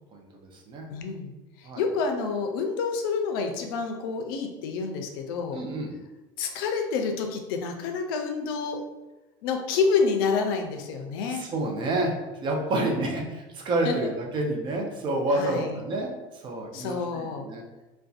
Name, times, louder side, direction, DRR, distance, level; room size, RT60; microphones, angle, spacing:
voice 1, 0.1-0.9 1.6-1.8 5.5-5.9 11.3-17.6, right 2 dB, 45° right, 0 dB, 0.6 m, -29 dB
voice 2, 0.9-1.3 1.6-5.6 6.4-8.8 9.4-11.4 12.6-13.4 13.8-13.9 15.3-15.8 16.7-17.5, left 5 dB, 85° left, 4 dB, 0.4 m, -28 dB
2.5 x 2.2 x 2.4 m, 1.1 s
supercardioid pair, 100°, 12 cm